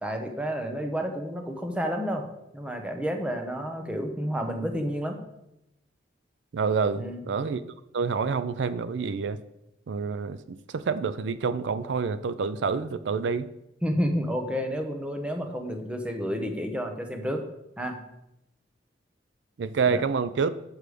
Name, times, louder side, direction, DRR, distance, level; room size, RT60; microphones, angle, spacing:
voice 1, 0.0-2.3 2.5-5.2 7.0-7.2 13.8-17.4 17.8-18.0 19.9-20.0, equal, 5° right, 4 dB, 0.9 m, -30 dB
voice 2, 6.5-7.6 7.9-9.4 9.9-13.5 19.6-20.5, right 5 dB, 80° right, 13 dB, 0.4 m, -27 dB
6.8 x 6.3 x 4.9 m, 0.86 s
head